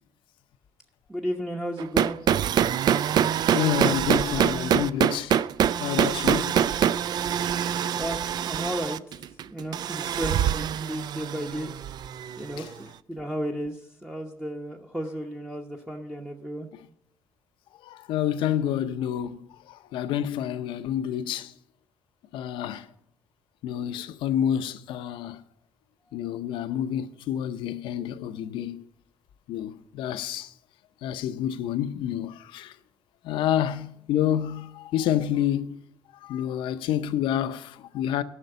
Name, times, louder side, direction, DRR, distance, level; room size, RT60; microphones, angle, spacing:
voice 1, 1.1-2.2 8.0-9.2 9.5-11.7 12.4-12.7 13.1-16.7, equal, 5° right, 0.9 m, -33 dB
sound 1, 1.8-12.6, right 9 dB, 60° right, 0.3 m, -25 dB
voice 2, 3.5-5.4 5.8-6.7 17.8-19.4 19.7-21.5 22.3-22.8 23.6-25.4 26.1-28.8 29.5-30.5 31.0-32.7 33.2-35.8 36.2-38.2, left 10 dB, 85° left, 0.6 m, -28 dB
11.0 x 5.9 x 7.9 m
cardioid pair, 90°, 8 cm